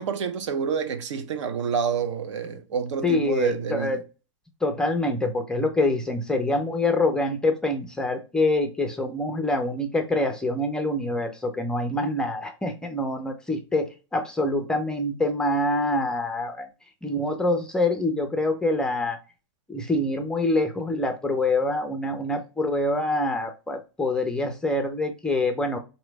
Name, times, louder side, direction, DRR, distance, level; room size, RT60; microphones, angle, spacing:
voice 1, 0.0-4.0, right 6 dB, 75° right, 0.8 m, -28 dB
voice 2, 3.0-4.0 4.6-16.7 17.0-19.2 19.7-25.8, left 2 dB, 5° left, 0.4 m, -25 dB
4.0 x 3.0 x 3.2 m
supercardioid pair, 155°, 16 cm